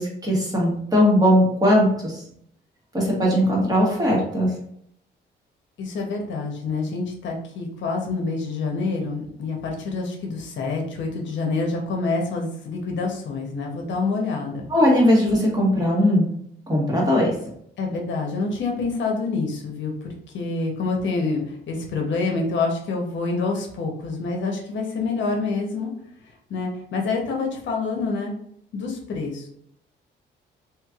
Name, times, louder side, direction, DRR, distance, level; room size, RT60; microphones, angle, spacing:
voice 1, 0.0-2.2 2.9-4.5 14.7-16.3 16.7-17.3, equal, 20° right, -4 dB, 1.5 m, -19 dB
voice 2, 5.8-14.6 17.8-25.9 26.5-28.3 28.7-29.5, left 3 dB, 70° left, 1 dB, 0.9 m, -27 dB
3.2 x 3.0 x 2.4 m, 0.71 s
cardioid pair, 90°, 20 cm